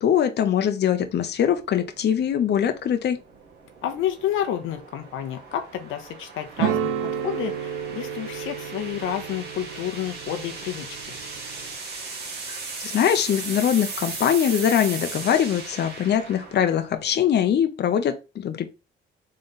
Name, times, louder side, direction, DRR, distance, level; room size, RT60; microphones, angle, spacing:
voice 1, 0.0-3.2 12.5-18.7, left 9 dB, 55° left, 0.7 m, -22 dB
sound 1, 1.1-17.3, right 4 dB, 55° right, 1.6 m, -38 dB
voice 2, 3.8-7.0 7.2-11.1, left 10 dB, 90° left, 0.8 m, -30 dB
sound 2, 6.6-11.8, right 9 dB, 90° right, 0.5 m, -31 dB
3.9 x 3.3 x 4.0 m
cardioid pair, 90°, 20 cm